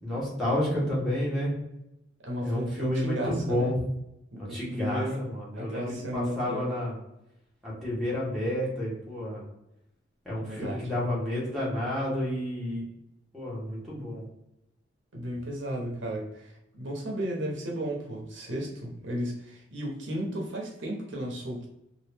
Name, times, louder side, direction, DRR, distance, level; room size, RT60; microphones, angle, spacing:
voice 1, 0.0-1.5 2.4-3.7 4.4-6.9 7.6-9.4 10.2-12.8 13.3-14.2, left 1 dB, ahead, -8 dB, 1.3 m, -30 dB
voice 2, 2.2-3.7 4.3-5.2 5.5-6.7 10.4-10.9 15.1-21.7, equal, 75° right, -1 dB, 0.9 m, -34 dB
2.9 x 2.5 x 3.3 m, 0.85 s
head